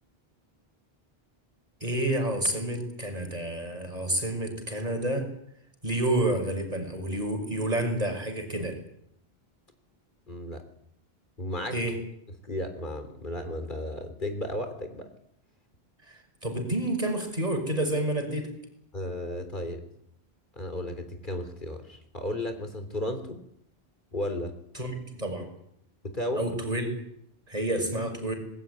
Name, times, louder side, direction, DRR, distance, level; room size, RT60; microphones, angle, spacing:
voice 1, 1.8-5.3 5.8-8.7 11.7-11.9 16.1-18.5 24.7-24.9 25.2-25.5 26.3-26.9 27.5-28.3, right 1 dB, 40° right, 4 dB, 6.2 m, -29 dB
voice 2, 10.3-10.6 11.4-11.8 12.4-15.1 18.9-19.8 20.6-23.4 24.1-24.5 26.0-26.5, left 1 dB, 50° left, 7 dB, 3.7 m, -34 dB
26.0 x 20.5 x 9.5 m, 0.75 s
omnidirectional pair, 1.0 m